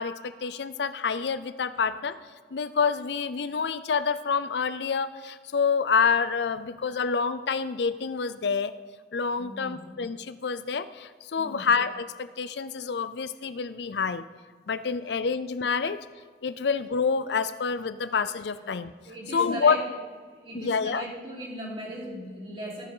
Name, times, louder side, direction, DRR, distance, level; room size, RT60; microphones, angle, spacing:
voice 1, 0.0-2.2 2.5-8.7 9.1-14.2 14.7-16.0 16.4-18.9 19.3-19.8 20.5-21.0, left 5 dB, 75° left, 13 dB, 0.5 m, -27 dB
voice 2, 9.3-9.8 11.4-11.6 18.0-18.1 19.1-19.8 20.3-22.9, equal, 30° right, -6 dB, 3.9 m, -38 dB
15.0 x 10.5 x 3.9 m, 1.5 s
head